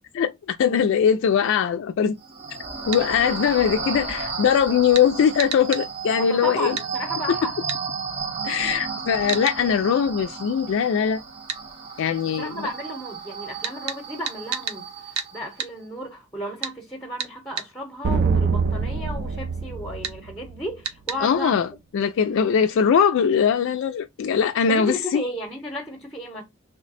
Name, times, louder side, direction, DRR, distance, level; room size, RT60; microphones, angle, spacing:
voice 1, 0.1-2.2 2.9-6.8 8.4-11.2 12.0-12.7 21.2-21.7 21.9-25.3, left 7 dB, 60° left, 0.3 m, -21 dB
sound 1, 2.2-15.6, right 5 dB, 30° right, 0.8 m, -34 dB
sound 2, 2.9-3.1 4.9-5.1 5.4-5.9 6.8-6.9 7.7-7.8 9.3-9.6 11.5-11.6 13.6-14.8 15.1-15.3 15.6-15.7 16.6-16.8 17.2-17.7 20.0-20.2 20.8-21.2, right 7 dB, 85° right, 0.7 m, -30 dB
voice 2, 6.2-7.7 12.2-21.6 24.7-26.4, equal, 10° left, 0.8 m, -34 dB
sound 3, 18.0-20.7, right 4 dB, 45° right, 0.4 m, -24 dB
3.2 x 2.1 x 4.0 m
head